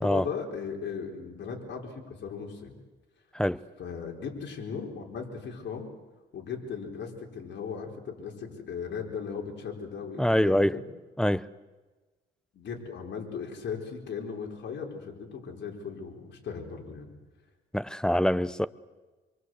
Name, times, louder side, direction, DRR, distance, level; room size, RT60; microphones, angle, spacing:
voice 1, 0.0-2.8 3.8-5.9 6.3-10.8 12.5-17.1, left 6 dB, 65° left, 5.1 m, -37 dB
voice 2, 10.2-10.8 11.2-11.5 17.7-18.7, equal, 5° left, 0.8 m, -25 dB
27.0 x 23.0 x 8.1 m
cardioid pair, 90°, 20 cm